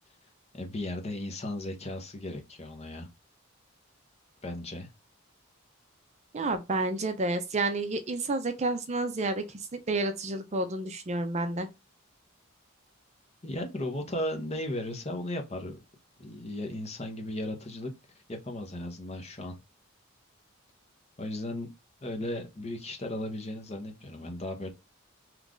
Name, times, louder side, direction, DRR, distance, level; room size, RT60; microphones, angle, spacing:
voice 1, 0.5-3.1 4.4-4.9 13.4-15.8 16.2-17.9 18.3-19.6 21.2-21.7 22.0-24.7, left 1 dB, 30° left, 0.8 m, -36 dB
voice 2, 6.3-11.7, right 2 dB, 35° right, 0.4 m, -30 dB
3.1 x 2.4 x 3.6 m
head